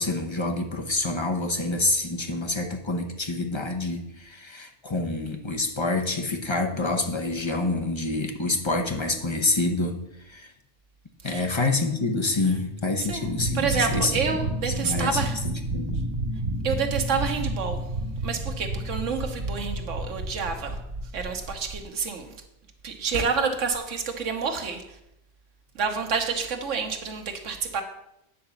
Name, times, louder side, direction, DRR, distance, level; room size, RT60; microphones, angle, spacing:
voice 1, 0.0-10.0 10.3-10.5 11.2-14.1 14.8-16.0, left 2 dB, 25° left, 4 dB, 0.8 m, -27 dB
sound 1, 13.2-21.8, right 1 dB, 55° right, 2.1 m, -30 dB
voice 2, 13.5-15.4 16.6-17.8 18.2-20.8 21.1-22.3 22.8-24.8 25.7-27.8, right 5 dB, 75° right, 4 dB, 1.4 m, -28 dB
9.3 x 3.9 x 7.0 m, 0.84 s
omnidirectional pair, 1.3 m